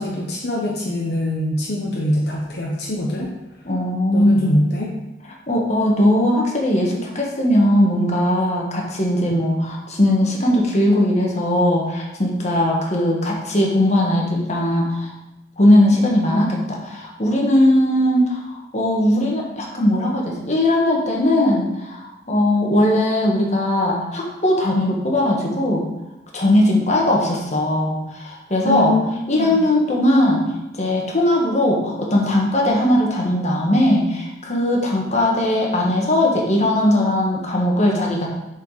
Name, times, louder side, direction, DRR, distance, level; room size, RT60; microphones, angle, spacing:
voice 1, 0.0-3.3 4.1-4.9 28.6-29.6, left 1 dB, 65° left, -2 dB, 0.9 m, -23 dB
voice 2, 3.6-4.6 5.5-15.1 15.6-25.8 26.3-28.9 29.3-30.4 30.8-38.3, left 1 dB, 40° left, -1 dB, 1.5 m, -19 dB
6.9 x 4.5 x 4.9 m, 0.95 s
head